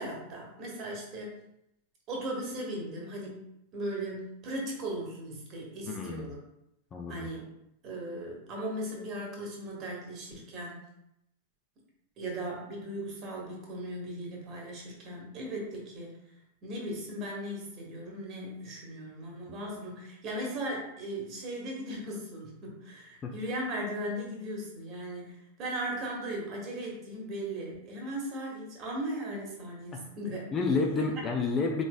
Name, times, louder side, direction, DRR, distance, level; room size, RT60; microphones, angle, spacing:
voice 1, 0.0-1.4 2.1-6.4 7.1-7.5 7.8-10.8 12.2-16.2 16.6-30.5, right 1 dB, 35° right, -2 dB, 1.4 m, -37 dB
voice 2, 5.9-6.3 6.9-7.3 19.5-19.6 23.2-23.3 30.5-31.8, left 4 dB, 25° left, 1 dB, 0.6 m, -30 dB
4.8 x 3.9 x 2.2 m, 0.82 s
figure-of-eight pair, 90°, 0 cm